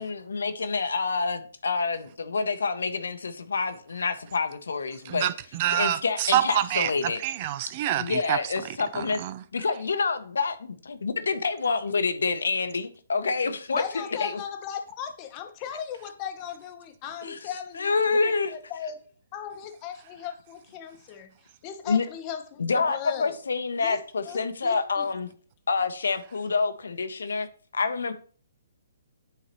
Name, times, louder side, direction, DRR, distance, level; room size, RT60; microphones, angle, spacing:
voice 1, 0.0-5.3 5.7-7.2 7.9-9.2 9.5-13.8 14.2-14.3 17.2-17.4 17.8-18.5 21.9-22.0 22.6-25.3 25.7-27.5 27.7-28.1, left 4 dB, 75° left, 0.7 m, -27 dB
voice 2, 5.1-8.4 8.9-9.4, right 12 dB, 40° right, 0.4 m, -27 dB
voice 3, 13.7-19.0 19.3-21.3 21.6-23.4 23.8-25.1, left 8 dB, 30° left, 0.9 m, -37 dB
9.0 x 3.9 x 3.0 m
hypercardioid pair, 140°, 0 cm